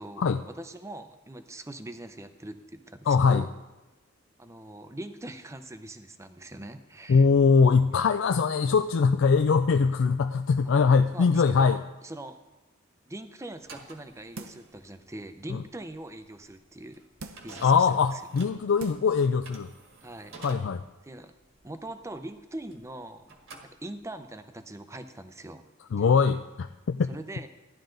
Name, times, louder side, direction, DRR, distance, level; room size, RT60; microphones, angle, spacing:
voice 1, 0.0-3.5 4.4-7.3 11.1-12.4 13.1-17.0 17.4-18.2 20.0-20.4 21.0-21.3 21.6-23.3 23.6-25.7 27.1-27.5, right 1 dB, 15° right, 9 dB, 0.6 m, -42 dB
voice 2, 3.1-3.4 7.1-11.8 15.5-15.6 17.6-19.7 20.4-20.8 25.9-27.1, left 5 dB, 60° left, 7 dB, 0.4 m, -22 dB
sound 1, 13.5-23.0 23.3-24.3, right 3 dB, 60° right, 1.7 m, -49 dB
sound 2, 14.4-14.8 15.3-15.4 17.2-17.6 18.3-18.4 18.8-19.2 19.6-19.7, right 2 dB, 80° right, 0.8 m, -43 dB
14.5 x 11.0 x 3.9 m, 1.1 s
head